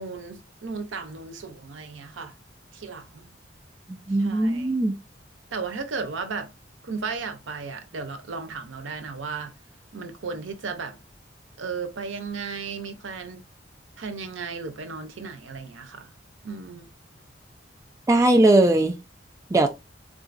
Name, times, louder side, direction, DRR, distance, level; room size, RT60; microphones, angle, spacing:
voice 1, 0.0-2.3 2.7-3.3 4.1-4.7 5.5-6.5 6.8-9.5 9.9-11.0 11.6-13.4 14.0-16.1 16.4-16.9, right 4 dB, 85° right, 0.6 m, -35 dB
voice 2, 4.1-4.9 18.1-18.9 19.5-19.7, right 2 dB, 15° right, 0.4 m, -19 dB
3.8 x 2.4 x 2.4 m
head